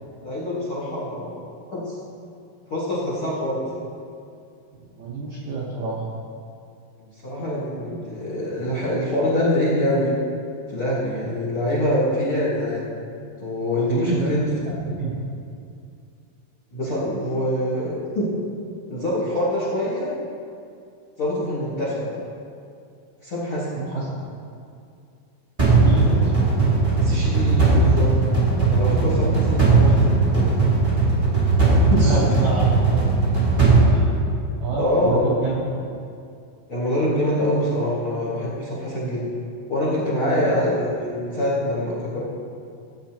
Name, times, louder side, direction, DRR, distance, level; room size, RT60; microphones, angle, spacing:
voice 1, 0.2-1.4 1.7-2.0 2.7-3.7 7.2-10.1 10.7-12.9 13.4-14.4 16.7-18.3 18.9-20.1 21.2-22.1 23.2-23.8 25.9-26.3 27.0-28.1 28.7-30.6 31.9-32.2 34.8-35.4 36.7-39.2 39.7-42.2, left 1 dB, 50° left, -8 dB, 1.7 m, -24 dB
voice 2, 5.0-6.1 11.4-11.5 13.7-15.3 23.7-24.3 25.7-26.3 27.1-27.2 29.1-29.4 31.9-33.0 33.6-33.7 33.9-34.1 34.6-35.6 40.3-40.5, right 3 dB, 85° right, -6 dB, 1.6 m, -28 dB
sound 1, 25.6-34.8, right 3 dB, 35° right, 0.5 m, -18 dB
16.0 x 8.8 x 2.9 m, 2.4 s
omnidirectional pair, 5.6 m